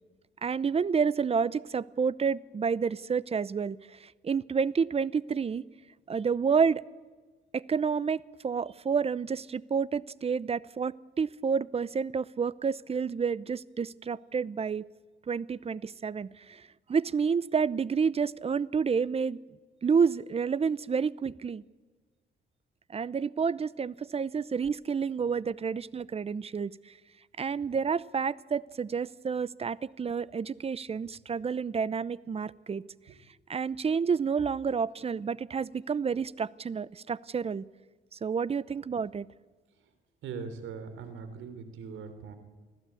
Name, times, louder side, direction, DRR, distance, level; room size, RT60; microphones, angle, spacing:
voice 1, 0.4-5.6 6.1-6.8 7.5-14.8 15.3-19.4 19.8-21.6 22.9-26.9 27.4-32.8 33.5-37.6 38.1-39.3, right 6 dB, 30° right, 20 dB, 0.7 m, -29 dB
voice 2, 40.2-42.3, right 5 dB, 80° right, 10 dB, 3.5 m, -41 dB
24.5 x 15.5 x 8.5 m, 1.4 s
cardioid pair, 90°, 20 cm